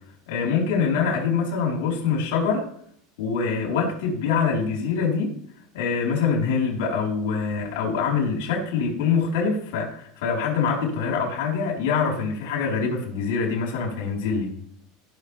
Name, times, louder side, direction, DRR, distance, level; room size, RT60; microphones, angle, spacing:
voice 1, 0.3-2.7 3.2-5.3 5.7-14.5, left 5 dB, 75° left, 0 dB, 4.4 m, -24 dB
17.0 x 6.6 x 3.5 m, 0.63 s
supercardioid pair, 130°, 0 cm